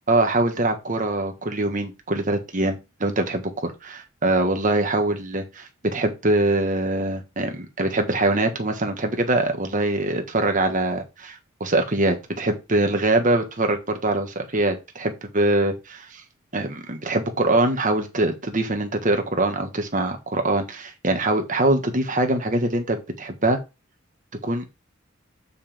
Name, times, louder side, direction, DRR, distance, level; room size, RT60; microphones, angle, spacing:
voice 1, 0.1-16.2 16.5-23.6 24.4-24.6, right 2 dB, 40° right, 5 dB, 1.5 m, -23 dB
7.2 x 6.6 x 3.6 m, 0.26 s
head